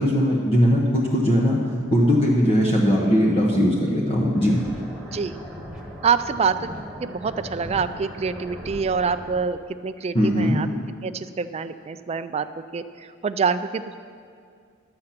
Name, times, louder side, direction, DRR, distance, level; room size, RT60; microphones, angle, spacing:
voice 1, 0.0-1.6 1.9-4.6 10.1-10.6, equal, 30° left, -2 dB, 1.0 m, -19 dB
sound 1, 4.3-9.5, equal, ahead, 1.5 m, -38 dB
voice 2, 6.0-6.7 7.0-10.7 11.0-12.5 12.7-14.0, right 5 dB, 30° right, 10 dB, 0.3 m, -26 dB
11.5 x 7.7 x 5.8 m, 2.2 s
head